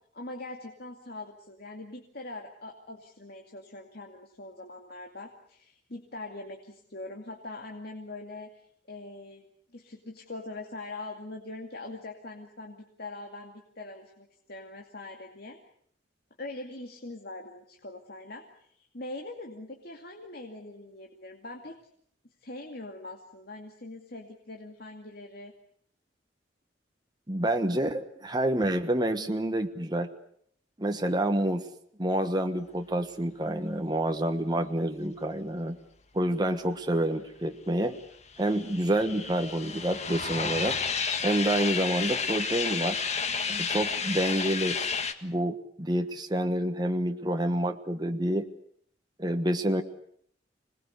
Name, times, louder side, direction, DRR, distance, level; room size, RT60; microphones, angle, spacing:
voice 1, 0.1-15.6 16.4-21.8 22.4-25.5, left 2 dB, 60° left, 2 dB, 2.5 m, -42 dB
voice 2, 27.3-30.1 30.8-31.6 32.0-35.8 36.1-38.0 38.4-40.8 41.2-43.0 43.5-44.8 45.2-48.5 49.2-49.8, right 1 dB, 25° right, 6 dB, 1.3 m, -28 dB
sound 1, 38.0-45.1, left 5 dB, 40° left, 1.7 m, -31 dB
26.5 x 20.0 x 8.2 m, 0.66 s
head